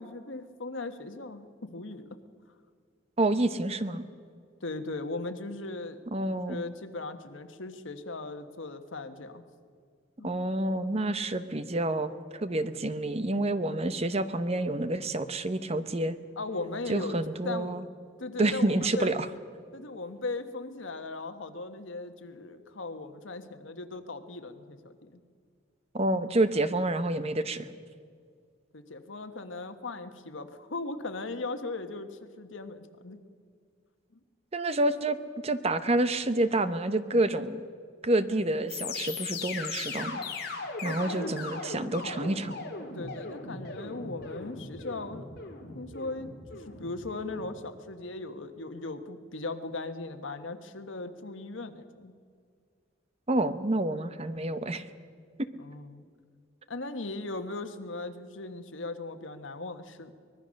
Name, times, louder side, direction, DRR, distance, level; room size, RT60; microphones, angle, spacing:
voice 1, 0.0-2.1 4.6-6.0 6.3-9.4 10.2-10.4 16.4-17.2 17.4-17.7 18.2-19.2 19.7-25.2 28.7-33.2 40.8-41.3 42.9-45.3 45.7-52.1 55.6-56.0 56.7-60.1, left 3 dB, 80° left, 8 dB, 1.4 m, -38 dB
voice 2, 3.2-4.0 6.1-6.6 10.2-16.2 16.9-17.8 18.4-19.3 25.9-27.7 34.5-35.2 35.4-37.6 38.0-40.2 40.8-42.5 53.3-54.8, right 2 dB, 30° right, 11 dB, 0.9 m, -28 dB
sound 1, 38.7-47.5, left 4 dB, 55° left, 2.9 m, -38 dB
24.5 x 19.5 x 6.4 m, 2.1 s
head